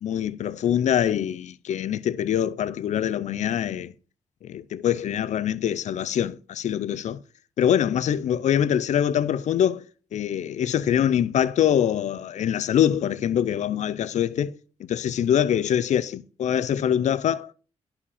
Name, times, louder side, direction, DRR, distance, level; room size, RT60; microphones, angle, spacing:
voice 1, 0.0-3.9 4.4-7.2 7.6-9.8 10.1-14.5 14.8-17.5, left 9 dB, 75° left, 0.5 m, -24 dB
11.0 x 4.9 x 5.0 m
cardioid pair, 70°, 12 cm